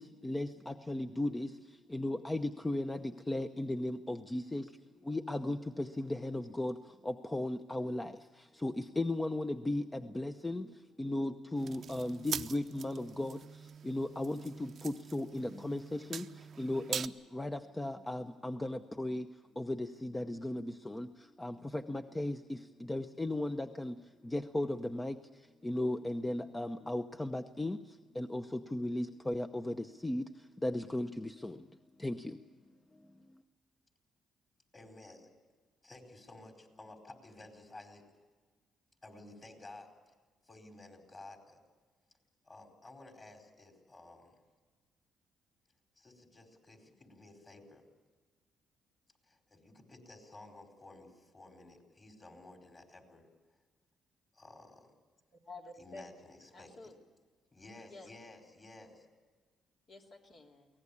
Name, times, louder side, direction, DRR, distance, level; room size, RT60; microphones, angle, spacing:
voice 1, 0.0-19.3 19.5-24.0 24.2-31.7 32.0-32.5 32.9-33.1, left 1 dB, 15° left, 0.8 m, -37 dB
sound 1, 11.5-17.1, right 8 dB, 60° right, 0.7 m, -43 dB
voice 2, 34.7-35.3 35.8-38.1 39.0-40.1 40.4-41.6 42.4-44.4 46.0-47.9 49.2-53.3 54.3-54.9 55.8-56.9 57.5-59.1, left 2 dB, 30° left, 4.6 m, -54 dB
voice 3, 55.4-56.1 56.5-57.0 57.9-58.1 59.9-60.7, left 2 dB, 60° left, 2.9 m, -50 dB
23.5 x 18.0 x 8.5 m
cardioid pair, 90°, 0 cm